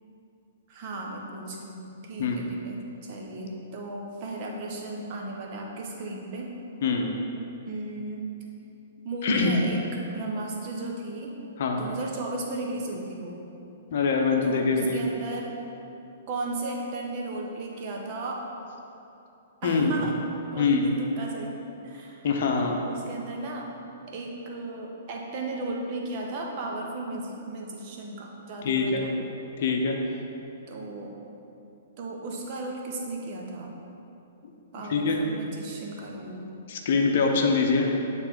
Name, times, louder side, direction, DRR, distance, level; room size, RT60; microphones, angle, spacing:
voice 1, 0.7-6.5 7.7-8.3 9.0-11.4 11.7-13.4 14.4-15.5 16.3-18.4 19.6-20.2 20.5-22.3 22.6-23.8 24.1-29.3 30.7-31.1 32.0-33.7 34.7-36.5, right 2 dB, 40° right, -1 dB, 1.0 m, -35 dB
voice 2, 13.9-15.0 19.6-19.9 20.6-20.8 22.2-22.8 28.6-29.0 29.6-30.0 34.9-35.2 36.7-37.9, left 4 dB, 50° left, 2 dB, 0.7 m, -24 dB
8.7 x 3.5 x 4.5 m, 2.9 s
figure-of-eight pair, 110°, 0 cm